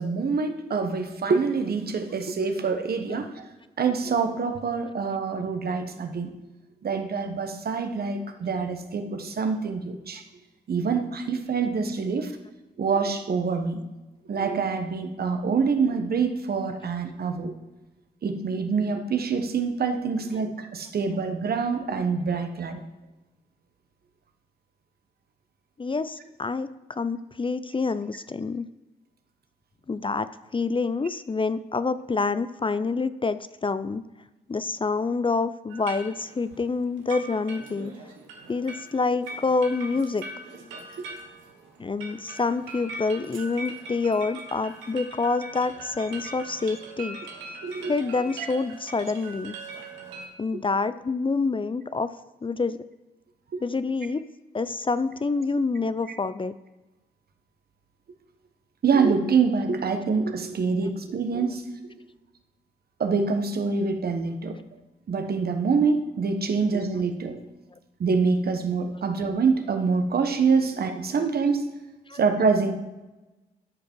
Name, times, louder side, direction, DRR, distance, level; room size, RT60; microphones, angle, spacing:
voice 1, 0.0-3.5 3.8-6.3 6.8-10.2 10.7-12.3 12.8-13.8 14.3-17.5 18.2-22.8 41.0-41.1 47.6-47.9 50.5-50.6 53.5-53.6 58.8-61.6 63.0-64.6 65.1-67.4 68.0-71.7 72.1-72.7, right 5 dB, 55° right, 6 dB, 1.3 m, -25 dB
voice 2, 25.8-28.7 29.9-34.0 34.5-37.9 38.5-40.2 41.8-47.2 47.9-49.5 50.4-52.1 52.4-52.8 53.6-54.2 54.5-56.5 72.1-72.2, left 4 dB, 25° left, 14 dB, 0.5 m, -27 dB
sound 1, 35.7-50.3, right 2 dB, 90° right, 1.3 m, -41 dB
13.0 x 5.2 x 4.7 m, 1.1 s
hypercardioid pair, 45°, 19 cm